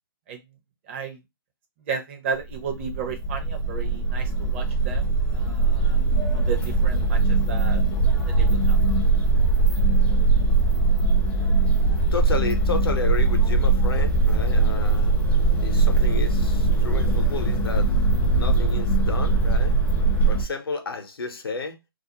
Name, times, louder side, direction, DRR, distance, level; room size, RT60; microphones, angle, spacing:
voice 1, 0.9-1.2 1.9-6.0 6.3-7.8 8.3-8.8, right 5 dB, 30° right, 0.6 m, -34 dB
sound 1, 2.5-20.4, right 3 dB, 15° left, 0.5 m, -21 dB
voice 2, 12.1-15.1 15.6-19.8 20.3-21.8, left 4 dB, 75° left, 0.7 m, -32 dB
2.4 x 2.0 x 2.8 m
figure-of-eight pair, 135°, 13 cm